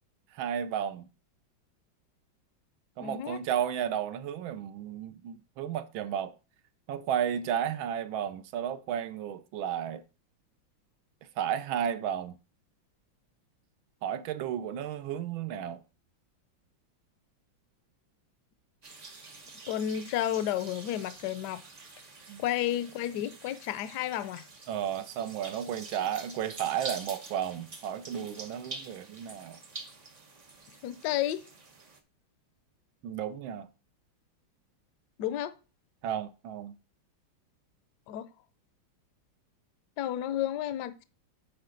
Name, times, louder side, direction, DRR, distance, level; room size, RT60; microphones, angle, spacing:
voice 1, 0.3-1.1 3.0-6.3 6.9-10.0 11.4-12.4 14.0-15.8 22.3-22.4 24.7-29.6 33.0-33.7 36.0-36.7, right 9 dB, 80° right, 1.5 m, -33 dB
voice 2, 3.0-3.4 19.7-21.6 22.4-24.4 30.8-31.4 35.2-35.5 38.1-38.3 40.0-41.0, left 11 dB, 70° left, 1.1 m, -31 dB
sound 1, 18.8-32.0, right 3 dB, 50° right, 0.5 m, -47 dB
8.8 x 4.7 x 3.8 m
omnidirectional pair, 2.2 m